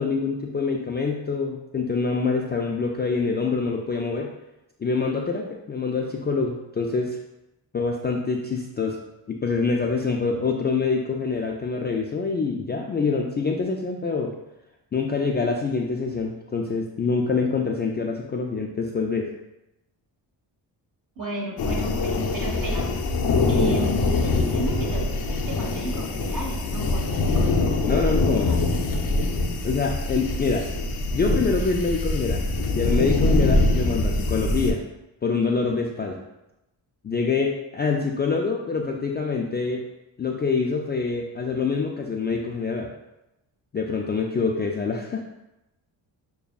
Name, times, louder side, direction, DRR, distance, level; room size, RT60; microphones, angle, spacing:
voice 1, 0.0-4.3 4.8-7.2 7.7-9.0 9.3-14.3 14.9-19.3 27.9-28.5 29.6-30.6 31.1-32.5 32.7-34.8 35.2-36.2 37.0-39.8 40.2-42.9 43.7-45.3, left 4 dB, 25° left, 0 dB, 0.3 m, -25 dB
voice 2, 21.1-22.9 23.5-28.7, right 1 dB, 45° right, -2 dB, 1.4 m, -34 dB
sound 1, 21.6-34.7, left 2 dB, 55° left, 0.7 m, -24 dB
6.7 x 2.3 x 2.3 m, 0.93 s
cardioid pair, 75°, 44 cm